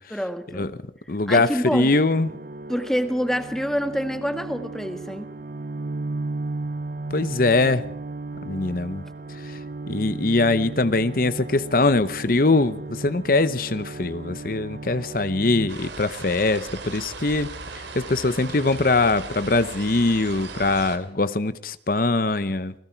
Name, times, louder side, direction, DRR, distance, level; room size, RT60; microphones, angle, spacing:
voice 1, 0.1-0.7 1.3-1.9 2.7-5.3, equal, 5° left, 1.5 m, -26 dB
voice 2, 1.1-2.3 7.1-7.9 8.4-9.0 9.4-9.6 9.9-22.7, left 3 dB, 50° left, 0.8 m, -22 dB
sound 1, 1.6-15.7, right 2 dB, 50° right, 0.7 m, -35 dB
sound 2, 15.7-21.0, right 3 dB, 80° right, 2.9 m, -37 dB
29.5 x 20.5 x 4.5 m
head